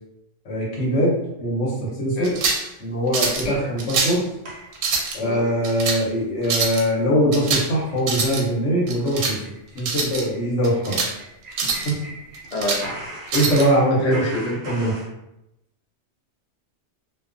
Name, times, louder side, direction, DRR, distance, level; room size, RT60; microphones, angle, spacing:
voice 1, 0.4-1.1 1.4-2.3 2.8-4.3 5.1-9.4 9.7-11.0 11.8-12.0 13.3-14.9, equal, 75° left, -5 dB, 1.2 m, -22 dB
Shotgun Action Cycling, 2.2-2.7 3.1-3.5 3.8-4.2 4.7-5.2 5.6-6.0 6.4-6.8 7.3-7.7 8.0-8.4 8.9-9.4 9.8-10.2 10.6-11.1 11.5-11.9 12.3-12.8 13.3-13.7, right 4 dB, 90° right, 0.9 m, -24 dB
sound 1, 4.5-5.6 6.0-6.1 6.4-6.7 6.9-7.0 7.4-7.6 7.9-8.1 8.4-8.5 8.8-12.5 12.8-15.1, right 1 dB, 60° right, 0.6 m, -38 dB
voice 2, 12.5-12.8 13.9-14.6, left 2 dB, 50° left, -3 dB, 0.5 m, -26 dB
2.4 x 2.3 x 2.4 m, 0.87 s
omnidirectional pair, 1.3 m